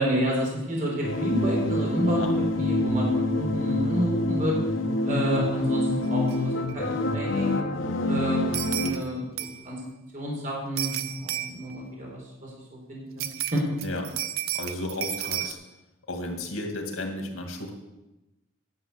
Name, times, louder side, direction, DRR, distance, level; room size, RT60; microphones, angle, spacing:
voice 1, 0.0-4.5 5.0-7.6 8.0-9.8 10.1-12.5 12.9-13.2 13.5-13.6, equal, 40° right, -3 dB, 4.3 m, -30 dB
sound 1, 1.0-8.9, left 2 dB, 65° left, 1.0 m, -26 dB
sound 2, 6.3-6.4 6.7-6.8 8.5-9.0 9.4-9.7 10.8-11.8 13.2-15.5, right 12 dB, 90° right, 0.7 m, -32 dB
voice 2, 13.8-14.2 14.5-15.6 16.1-17.7, left 2 dB, 90° left, 3 dB, 2.3 m, -33 dB
11.5 x 6.8 x 8.3 m, 0.98 s
head